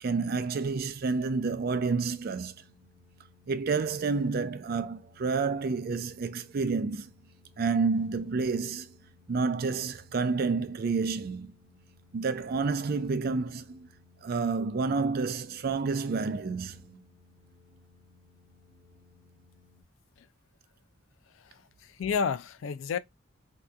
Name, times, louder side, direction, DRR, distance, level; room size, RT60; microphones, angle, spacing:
voice 1, 0.0-2.5 3.5-7.1 7.6-8.9 9.3-11.5 12.1-13.9 14.2-17.0, right 4 dB, 50° right, 0.4 m, -29 dB
sound 1, 0.9-19.8, left 3 dB, 45° left, 0.9 m, -59 dB
voice 2, 21.4-23.0, left 6 dB, 85° left, 0.3 m, -31 dB
2.8 x 2.3 x 3.4 m
head